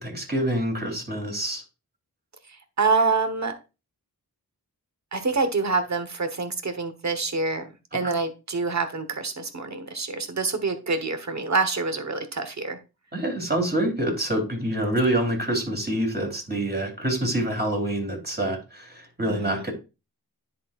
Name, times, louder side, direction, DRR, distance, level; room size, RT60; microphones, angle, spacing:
voice 1, 0.0-1.6 13.1-19.7, right 1 dB, 25° right, 2 dB, 3.4 m, -26 dB
voice 2, 2.8-3.5 5.1-12.8 19.3-19.7, right 4 dB, 45° right, 8 dB, 1.3 m, -26 dB
10.0 x 4.4 x 2.5 m, 0.28 s
cardioid pair, 40°, 38 cm